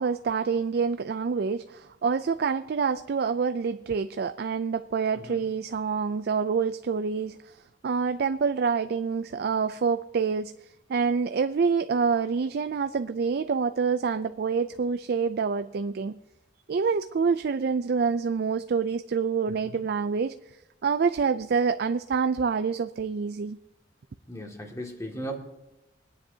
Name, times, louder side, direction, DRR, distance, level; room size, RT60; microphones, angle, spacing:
voice 1, 0.0-16.2 16.7-20.3 20.8-23.6, right 5 dB, 55° right, 10 dB, 0.4 m, -27 dB
voice 2, 24.3-25.4, right 1 dB, 15° left, 0 dB, 2.1 m, -37 dB
24.0 x 9.9 x 2.8 m, 0.97 s
head